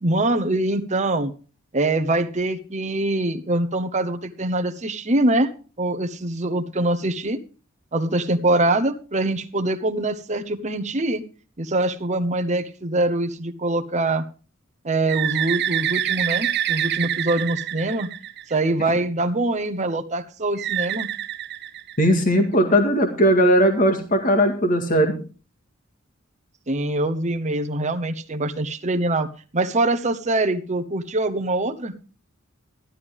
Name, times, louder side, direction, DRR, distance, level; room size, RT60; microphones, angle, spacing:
voice 1, 0.0-1.3 1.7-5.5 5.8-7.4 7.9-11.2 11.6-14.2 14.8-18.1 18.5-21.1 26.7-29.3 29.5-31.9, right 2 dB, 35° right, 6 dB, 1.0 m, -23 dB
Bird, 15.1-18.8 20.6-22.4, right 11 dB, 55° right, 0.6 m, -26 dB
voice 2, 22.0-25.1, equal, 45° left, 5 dB, 2.0 m, -18 dB
12.5 x 11.5 x 3.6 m, 0.36 s
head